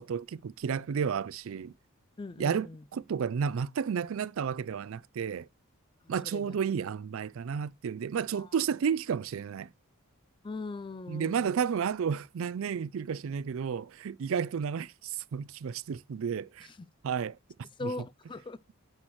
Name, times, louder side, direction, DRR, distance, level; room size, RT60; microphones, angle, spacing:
voice 1, 0.0-1.7 2.4-5.5 6.1-9.7 11.1-16.7 17.0-17.4 17.8-17.9, right 7 dB, 65° right, 0.4 m, -32 dB
voice 2, 2.2-2.9 6.0-6.6 8.3-8.5 10.4-11.6 16.6-16.9 17.8-18.6, left 3 dB, 20° left, 0.3 m, -40 dB
9.7 x 5.9 x 3.1 m
head